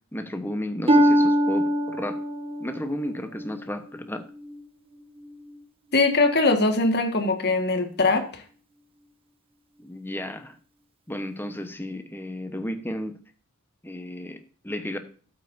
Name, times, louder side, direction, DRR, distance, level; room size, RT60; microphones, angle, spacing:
voice 1, 0.1-2.2 2.6-4.2 9.8-10.6 11.1-13.2 13.8-15.0, left 1 dB, 10° left, 8 dB, 1.1 m, -33 dB
Harp, 0.9-4.6 5.2-5.6 6.2-6.3, equal, 25° right, 1.1 m, -24 dB
voice 2, 5.9-8.4, left 3 dB, 50° left, 6 dB, 1.7 m, -21 dB
12.5 x 8.5 x 2.7 m, 0.41 s
head